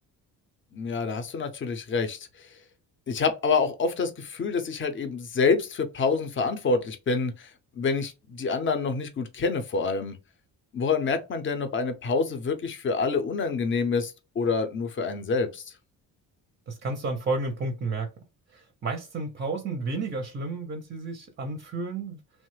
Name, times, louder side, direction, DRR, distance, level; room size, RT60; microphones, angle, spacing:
voice 1, 0.7-2.3 3.1-7.5 7.8-10.2 10.7-15.6, left 4 dB, 30° left, 0.5 m, -27 dB
voice 2, 16.7-18.1 18.5-22.2, right 3 dB, 30° right, 0.5 m, -31 dB
3.1 x 2.1 x 3.1 m
cardioid pair, 140°, 38 cm